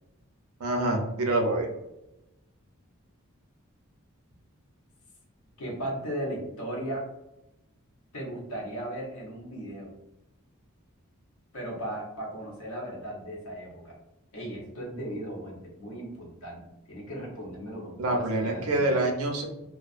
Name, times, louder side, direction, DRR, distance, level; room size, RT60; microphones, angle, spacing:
voice 1, 0.6-1.7 18.0-19.5, right 2 dB, 85° right, 2 dB, 0.5 m, -26 dB
voice 2, 5.6-7.0 8.1-9.9 11.5-14.0 14.3-16.6 16.9-19.0, right 1 dB, 80° left, -2 dB, 0.9 m, -36 dB
2.3 x 2.2 x 2.4 m, 0.92 s
head